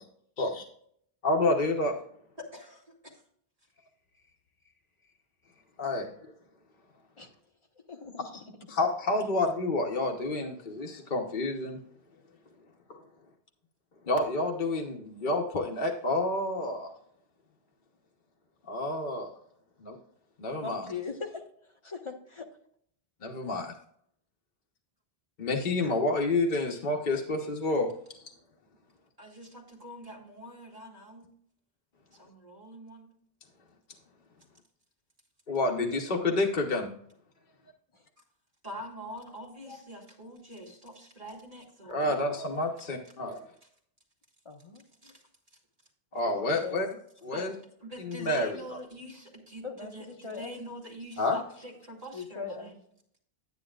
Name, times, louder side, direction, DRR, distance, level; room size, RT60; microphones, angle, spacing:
voice 1, 1.2-2.0 5.8-6.3 8.7-11.8 12.9-13.0 14.1-16.9 18.7-19.3 19.8-20.0 20.4-20.9 23.2-23.7 25.4-27.9 35.5-36.9 41.9-43.5 46.1-46.9 47.2-47.5 48.0-48.6 51.2-51.4, left 2 dB, 50° left, 1 dB, 1.1 m, -29 dB
voice 2, 2.4-3.2 29.2-31.3 32.1-33.1 38.6-42.2 45.0-45.2 47.3-47.5 47.8-52.8, equal, 35° right, -3 dB, 2.5 m, -44 dB
voice 3, 7.9-8.6 20.6-22.0 37.9-38.0 44.4-44.8 46.3-47.0 49.6-50.5 52.1-52.7, left 5 dB, 30° left, 3 dB, 1.1 m, -40 dB
9.9 x 9.6 x 2.4 m, 0.65 s
omnidirectional pair, 1.0 m